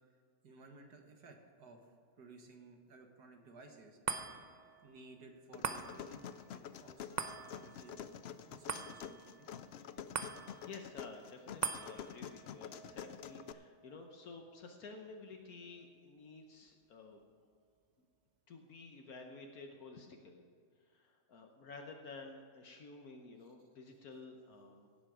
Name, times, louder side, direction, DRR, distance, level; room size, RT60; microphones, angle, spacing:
voice 1, 0.4-1.9 2.2-4.0 4.8-8.1 8.4-9.5, right 3 dB, 80° right, 4 dB, 2.0 m, -57 dB
sound 1, 4.1-16.6 17.1-17.2, right 5 dB, 45° right, 0.5 m, -46 dB
sound 2, 5.5-13.5, left 8 dB, 85° left, 0.5 m, -48 dB
voice 2, 10.6-17.2 18.5-20.4 20.8-24.9, left 3 dB, 70° left, 3 dB, 1.4 m, -52 dB
17.0 x 7.8 x 4.9 m, 2.3 s
omnidirectional pair, 1.7 m